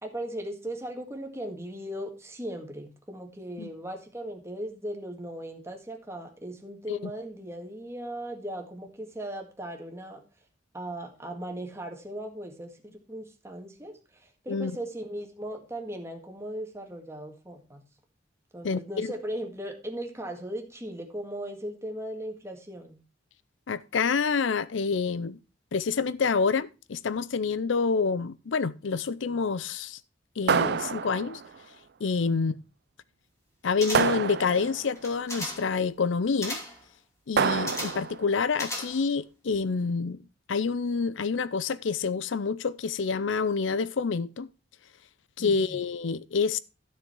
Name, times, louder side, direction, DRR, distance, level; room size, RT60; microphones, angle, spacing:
voice 1, 0.0-10.2 10.7-17.8 18.5-23.0 32.3-32.6 45.4-45.8, right 1 dB, 15° right, 1.9 m, -38 dB
voice 2, 18.6-19.1 23.7-25.4 25.7-30.0 30.4-31.4 32.0-32.5 33.6-36.6 37.3-40.2 40.5-44.5 45.4-46.6, left 5 dB, 85° left, 0.5 m, -27 dB
sound 1, 30.5-31.5 33.9-34.9 37.4-38.2, right 6 dB, 60° right, 0.5 m, -27 dB
sound 2, 33.8-34.3 35.0-35.7 36.4-36.8 37.7-38.1 38.5-39.2 39.5-39.6, equal, 15° left, 2.8 m, -36 dB
12.5 x 6.6 x 4.6 m
head